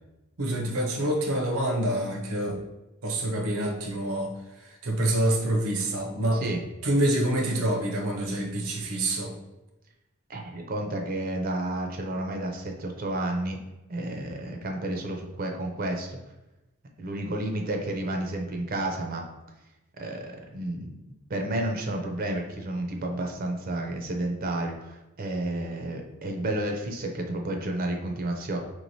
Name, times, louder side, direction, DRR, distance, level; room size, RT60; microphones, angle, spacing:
voice 1, 0.4-2.6 3.0-4.3 4.6-6.4 6.8-9.3, right 1 dB, 80° right, 1 dB, 0.7 m, -26 dB
voice 2, 10.3-13.6 13.9-16.2 17.0-19.2 20.0-21.0 21.3-28.6, right 1 dB, 40° right, 2 dB, 0.4 m, -31 dB
4.6 x 3.1 x 2.6 m, 1.0 s
head